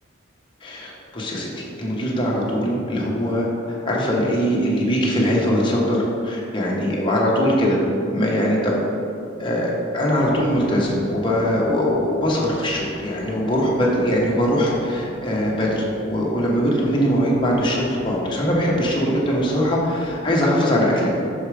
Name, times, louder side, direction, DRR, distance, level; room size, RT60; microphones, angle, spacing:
voice 1, 0.6-6.0 6.2-7.8 8.1-8.8 9.4-21.1, equal, 25° left, -4 dB, 1.1 m, -21 dB
sound 1, 10.1-20.3, equal, 20° right, 0.8 m, -40 dB
5.8 x 4.6 x 4.9 m, 2.6 s
head